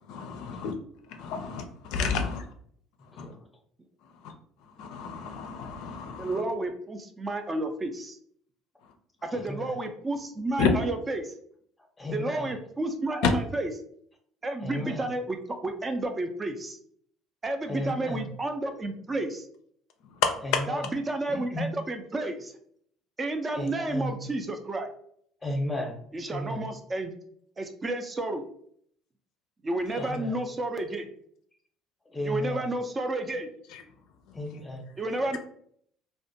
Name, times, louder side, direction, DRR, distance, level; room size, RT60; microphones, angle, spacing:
voice 1, 0.1-0.7 1.2-2.5 3.2-3.3 4.8-6.4 10.6-10.7 13.2-13.3 20.2-20.3, left 5 dB, 75° left, 0.4 m, -29 dB
voice 2, 3.1-3.4 9.3-9.7 12.0-12.5 14.6-15.1 17.7-18.3 20.4-20.9 21.3-21.7 23.6-24.2 25.4-26.0 26.3-26.6 30.0-30.4 32.1-32.6 34.3-34.9, left 1 dB, 15° left, 0.6 m, -34 dB
voice 3, 6.2-8.2 9.2-11.4 12.1-13.7 14.4-16.8 17.4-19.5 20.7-22.5 23.2-24.9 26.1-27.1 27.6-28.4 29.6-31.1 32.2-33.5 35.0-35.4, right 2 dB, 25° right, 0.4 m, -31 dB
2.4 x 2.1 x 2.6 m
supercardioid pair, 90°, 0 cm